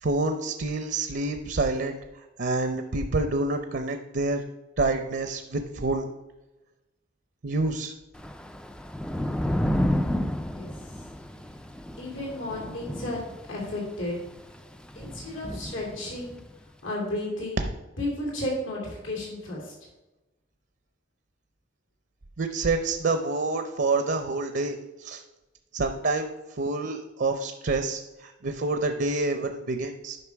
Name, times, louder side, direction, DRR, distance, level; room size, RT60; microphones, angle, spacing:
voice 1, 0.0-2.0 2.4-4.4 4.8-6.1 7.4-7.9 22.4-25.2 25.7-26.3 26.6-30.2, right 3 dB, 55° right, 7 dB, 0.6 m, -27 dB
Thunder / Rain, 8.1-16.5, left 1 dB, 5° left, 0.3 m, -31 dB
voice 2, 12.0-13.2 13.5-14.2 14.9-16.4 16.8-17.6 18.0-19.7, left 1 dB, 80° left, -2 dB, 2.9 m, -33 dB
9.8 x 5.7 x 4.7 m, 1.1 s
head